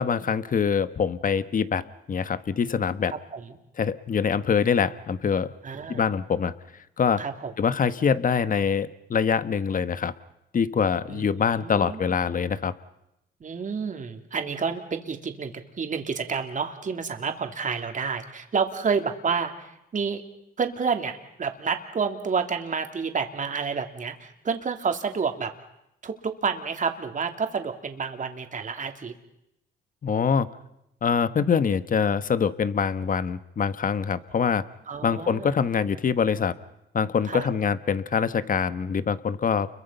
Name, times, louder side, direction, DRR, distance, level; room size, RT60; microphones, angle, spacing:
voice 1, 0.0-1.8 2.1-3.1 3.8-5.5 5.9-6.5 7.0-7.2 7.6-10.1 10.5-12.7 30.0-30.5 31.0-34.6 35.0-36.5 36.9-39.7, left 6 dB, 45° left, 14 dB, 1.3 m, -24 dB
voice 2, 5.6-6.0 7.2-7.5 11.1-12.0 13.4-20.2 20.6-25.5 26.0-29.1 34.9-35.5 37.3-37.5, right 5 dB, 40° right, 5 dB, 2.8 m, -29 dB
30.0 x 23.0 x 5.7 m, 0.84 s
cardioid pair, 90°, 20 cm